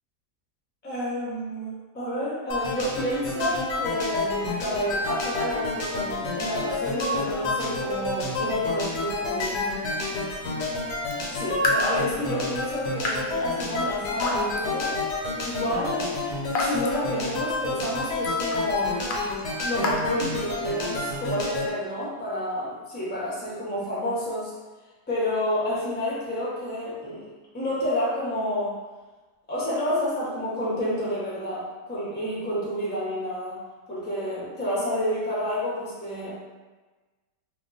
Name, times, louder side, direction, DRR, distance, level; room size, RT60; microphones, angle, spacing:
voice 1, 0.8-9.8 11.3-15.0 15.4-16.1 16.6-19.0 19.6-24.5 25.1-27.3 27.5-28.7 29.5-33.6 33.9-36.3, equal, 10° left, -7 dB, 0.4 m, -29 dB
sound 1, 2.5-21.7, left 2 dB, 90° left, 1.3 m, -29 dB
Raindrop / Drip, 11.0-20.9, left 2 dB, 70° left, 0.9 m, -34 dB
2.9 x 2.3 x 3.8 m, 1.2 s
omnidirectional pair, 1.8 m